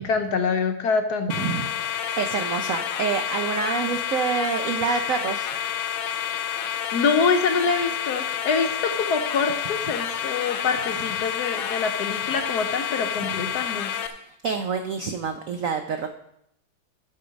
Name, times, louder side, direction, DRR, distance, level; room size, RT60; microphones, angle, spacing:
voice 1, 0.0-1.5 6.9-13.9, left 5 dB, 65° left, 6 dB, 1.1 m, -25 dB
sound 1, 1.3-14.1, left 9 dB, 85° left, 1.6 m, -29 dB
voice 2, 1.3-5.5 14.4-16.1, right 6 dB, 75° right, 6 dB, 0.7 m, -27 dB
12.5 x 5.5 x 5.1 m, 0.76 s
omnidirectional pair, 2.2 m